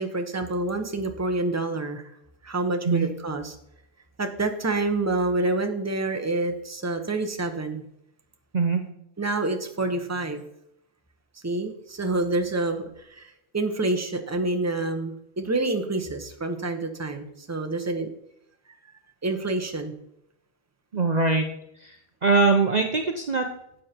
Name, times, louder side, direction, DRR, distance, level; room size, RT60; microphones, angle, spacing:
voice 1, 0.0-2.1 2.4-3.6 4.2-7.8 9.2-10.4 11.4-18.1 19.2-19.9, right 2 dB, 15° right, 6 dB, 1.0 m, -27 dB
voice 2, 20.9-21.5 21.8-22.0 22.2-23.5, right 4 dB, 40° right, 4 dB, 0.9 m, -22 dB
12.0 x 8.4 x 4.5 m, 0.76 s
omnidirectional pair, 1.3 m